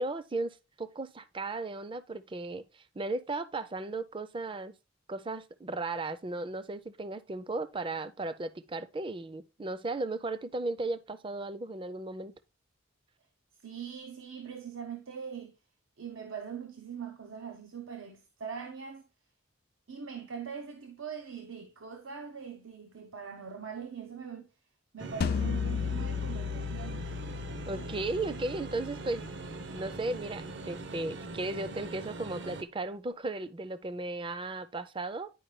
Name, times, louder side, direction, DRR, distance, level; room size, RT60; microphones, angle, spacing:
voice 1, 0.0-4.8 5.1-12.3 27.7-29.2 29.7-35.3, right 2 dB, 25° right, 0.5 m, -36 dB
voice 2, 13.6-15.5 16.0-19.0 19.9-24.5 24.9-27.0, right 6 dB, 90° right, 0.8 m, -42 dB
sound 1, 25.0-32.6, right 3 dB, 60° right, 0.7 m, -42 dB
sound 2, 25.2-30.3, left 7 dB, 50° left, 0.3 m, -35 dB
10.0 x 4.8 x 3.2 m
head